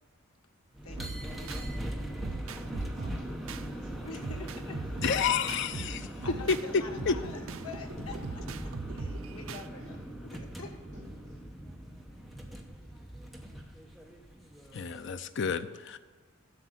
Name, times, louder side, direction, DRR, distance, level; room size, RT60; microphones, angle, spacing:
sound 1, 0.7-15.2, right 1 dB, ahead, 0.8 m, -41 dB
voice 1, 0.8-1.9 4.0-5.0 6.2-10.7, left 3 dB, 85° left, 2 dB, 1.5 m, -46 dB
sound 2, 0.9-1.7 2.2-3.7 4.2-6.7 7.0-9.7, right 3 dB, 75° right, 0.5 m, -40 dB
voice 2, 2.0-4.6 5.5-6.4 6.9-7.0 9.8-10.0 10.9-11.5, equal, 35° right, -6 dB, 3.1 m, -49 dB
voice 3, 5.0-6.0 6.5-6.6 7.1-7.2 14.7-16.0, left 6 dB, 55° left, 11 dB, 0.5 m, -29 dB
7.8 x 6.6 x 7.6 m, 1.5 s
head